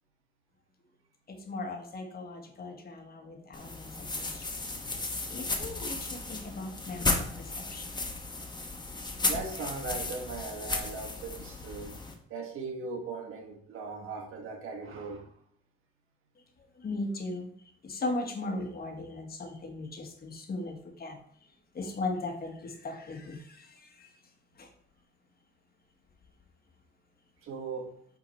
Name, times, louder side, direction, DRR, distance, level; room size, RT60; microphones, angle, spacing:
voice 1, 1.3-4.5 5.3-7.9 16.8-17.5 17.8-21.2 21.7-23.7 24.0-24.1 24.6-24.7, left 2 dB, 45° left, 4 dB, 1.3 m, -38 dB
sound 1, 3.5-12.1, left 3 dB, 20° left, 1.2 m, -34 dB
voice 2, 9.3-11.9 12.3-15.3 27.4-28.0, right 4 dB, 85° right, 1 dB, 1.5 m, -38 dB
8.4 x 3.8 x 4.2 m, 0.64 s
cardioid pair, 110°, 21 cm